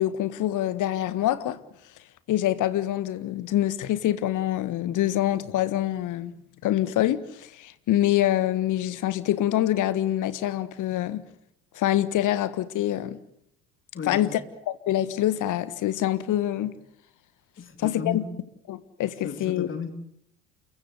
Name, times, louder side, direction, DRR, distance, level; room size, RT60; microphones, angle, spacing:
voice 1, 0.0-1.6 2.3-6.3 6.6-11.2 11.7-13.2 14.1-14.4 14.7-16.7 17.8-18.2 18.7-19.7, left 13 dB, 45° left, 1.7 m, -25 dB
voice 2, 13.9-14.4 17.6-18.4 19.2-19.9, left 6 dB, 25° left, 3.7 m, -34 dB
29.0 x 15.0 x 8.4 m
figure-of-eight pair, 65°, 44 cm